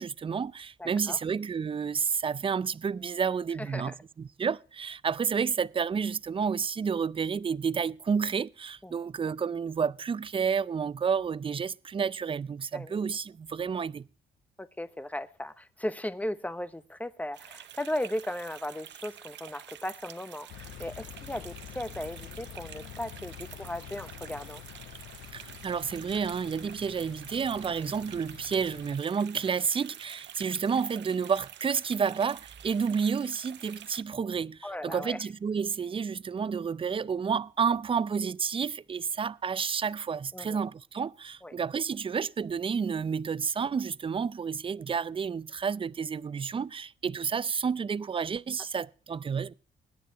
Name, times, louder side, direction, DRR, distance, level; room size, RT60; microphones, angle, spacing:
voice 1, 0.0-14.1 25.3-49.5, right 6 dB, 25° right, 0.5 m, -30 dB
voice 2, 0.8-1.2 3.6-4.0 8.8-8.9 12.7-13.0 14.6-24.6 34.6-35.2 40.3-40.6 41.4-41.5, left 1 dB, 5° left, 1.0 m, -36 dB
sound 1, 17.3-34.0, right 10 dB, 65° right, 0.8 m, -48 dB
Engine, 20.5-29.0, left 13 dB, 85° left, 0.7 m, -47 dB
21.0 x 9.9 x 3.0 m
cardioid pair, 90°, 20 cm